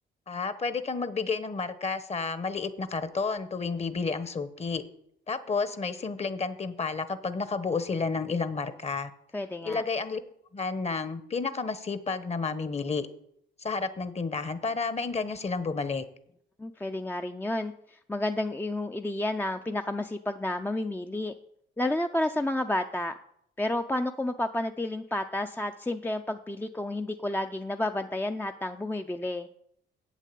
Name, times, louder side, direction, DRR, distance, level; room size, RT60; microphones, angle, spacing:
voice 1, 0.3-4.8 5.3-9.1 9.6-10.2 10.5-13.1 13.6-16.0, left 4 dB, 35° left, 12 dB, 1.1 m, -31 dB
voice 2, 9.3-9.8 16.6-21.3 21.8-23.1 23.6-29.5, left 1 dB, 10° left, 6 dB, 0.5 m, -31 dB
8.3 x 7.4 x 8.3 m, 0.72 s
cardioid pair, 90°, 20 cm